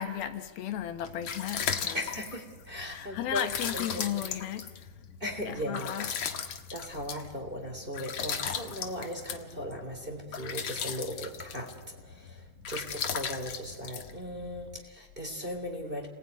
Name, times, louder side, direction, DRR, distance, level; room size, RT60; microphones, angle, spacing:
voice 1, 0.0-2.0 2.9-4.7 5.5-6.1, left 10 dB, 85° left, 3.3 m, -35 dB
sound 1, 0.9-14.8, left 7 dB, 50° left, 1.7 m, -37 dB
voice 2, 1.9-3.5 3.7-4.2 5.2-6.1 6.7-16.1, equal, 15° right, 3.2 m, -38 dB
30.0 x 20.0 x 9.5 m
omnidirectional pair, 4.2 m